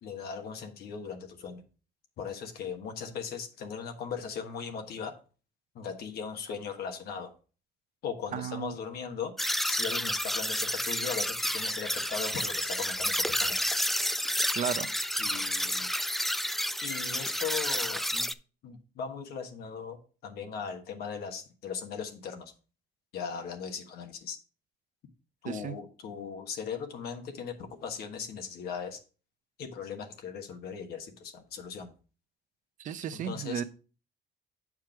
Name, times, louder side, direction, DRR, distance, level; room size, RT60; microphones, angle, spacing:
voice 1, 0.0-1.6 2.2-5.1 5.7-7.3 8.0-9.3 9.6-13.6 15.2-15.9 16.8-18.3 18.6-22.5 23.1-24.4 25.4-29.0 29.6-31.9 33.1-33.6, left 6 dB, 65° left, 1.3 m, -38 dB
voice 2, 8.3-8.7 14.5-14.9 25.5-25.8 32.8-33.6, right 9 dB, 50° right, 0.6 m, -34 dB
sound 1, 9.4-18.3, equal, ahead, 0.3 m, -30 dB
7.4 x 4.8 x 4.5 m
cardioid pair, 110°, 17 cm